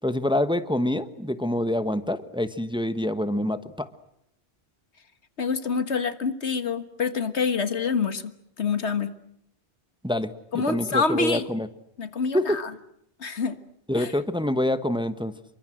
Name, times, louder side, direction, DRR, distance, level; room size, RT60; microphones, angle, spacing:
voice 1, 0.0-3.9 10.0-11.7 12.3-12.6 13.9-15.3, left 1 dB, 5° right, 11 dB, 1.1 m, -26 dB
voice 2, 5.4-8.3 8.6-9.1 10.5-11.5 12.0-12.7 13.2-13.6 13.9-14.1, left 5 dB, 85° left, 11 dB, 1.9 m, -26 dB
28.5 x 24.0 x 7.8 m, 0.76 s
omnidirectional pair, 1.1 m